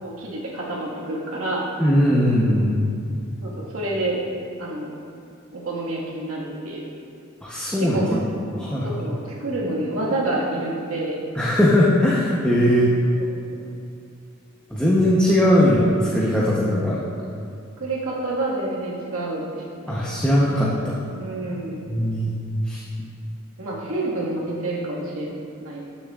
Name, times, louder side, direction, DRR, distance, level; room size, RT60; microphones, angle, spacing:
voice 1, 0.0-1.7 3.4-4.2 4.6-4.9 5.5-6.8 7.8-8.2 8.8-11.2 13.2-13.7 17.8-19.9 21.2-21.9 23.6-25.3 25.6-25.8, right 2 dB, 80° right, -4 dB, 1.7 m, -28 dB
voice 2, 1.8-2.8 7.4-8.0 8.5-9.0 11.4-12.9 14.7-17.0 19.9-21.0 21.9-22.3 22.7-22.8, equal, 5° left, -7 dB, 0.8 m, -19 dB
13.0 x 7.1 x 2.4 m, 2.4 s
head